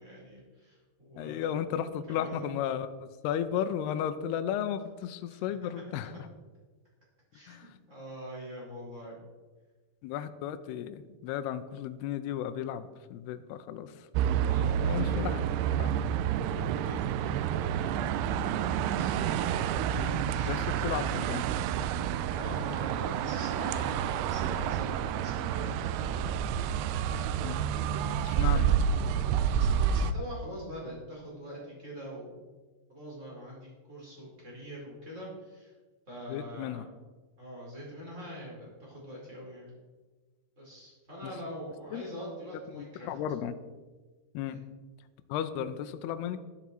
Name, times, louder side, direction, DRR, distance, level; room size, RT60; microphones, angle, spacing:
voice 1, 0.0-1.6 2.1-2.5 5.3-5.4 7.3-9.2 14.4-15.3 16.7-19.2 20.2-20.5 22.1-26.2 27.8-28.7 29.6-32.4 32.9-35.7 36.1-36.8 37.4-39.7 40.6-43.1 44.4-44.6, equal, 15° right, -4 dB, 4.7 m, -44 dB
voice 2, 1.2-6.3 7.5-7.7 10.0-14.1 14.8-15.4 15.7-15.9 20.0-20.2 20.5-21.4 27.4-27.6 28.2-28.7 36.3-36.9 41.2-41.4 41.9-42.0 42.7-43.5 44.3-44.6 45.3-46.4, left 9 dB, 85° left, 9 dB, 2.4 m, -34 dB
sound 1, 14.1-30.1, right 8 dB, 90° right, 2.3 m, -29 dB
12.0 x 11.5 x 4.6 m, 1.3 s
omnidirectional pair, 5.3 m